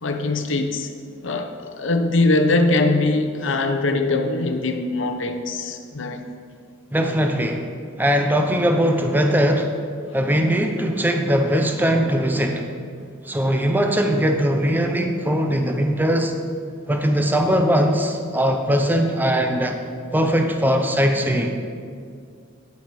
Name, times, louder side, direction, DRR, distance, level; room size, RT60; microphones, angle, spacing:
voice 1, 0.0-0.9 1.2-6.2, left 2 dB, 70° left, 6 dB, 0.8 m, -22 dB
voice 2, 6.9-7.7 8.0-9.8 10.1-12.7 13.2-16.3 16.9-19.8 20.1-21.5, equal, 10° right, 4 dB, 0.6 m, -20 dB
9.8 x 8.3 x 4.8 m, 2.3 s
head